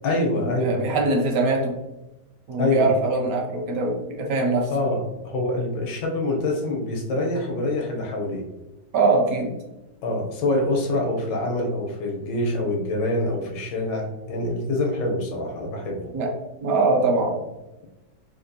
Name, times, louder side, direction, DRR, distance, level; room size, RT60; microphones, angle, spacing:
voice 1, 0.0-0.9 2.6-2.9 4.7-8.5 10.0-16.1, left 2 dB, 90° left, 2 dB, 1.4 m, -25 dB
voice 2, 0.6-1.8 2.5-4.7 8.9-9.5 16.1-16.3 16.6-17.4, right 3 dB, 70° right, 1 dB, 1.0 m, -22 dB
3.5 x 2.6 x 2.6 m, 1.0 s
omnidirectional pair, 1.8 m